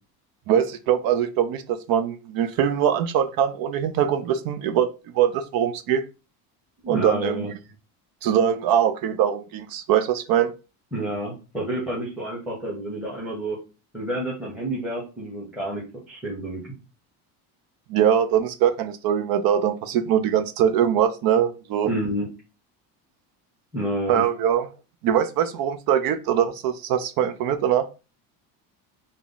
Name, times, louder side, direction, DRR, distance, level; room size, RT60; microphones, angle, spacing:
voice 1, 0.5-4.9 5.1-6.0 6.9-7.5 8.2-10.5 17.9-21.9 24.1-24.7 25.0-27.8, right 9 dB, 55° right, 0.5 m, -22 dB
voice 2, 6.8-7.5 10.9-13.6 13.9-16.6 21.8-22.2 23.7-24.2, right 1 dB, 5° right, 1.1 m, -29 dB
3.4 x 2.1 x 3.8 m
cardioid pair, 115°, 43 cm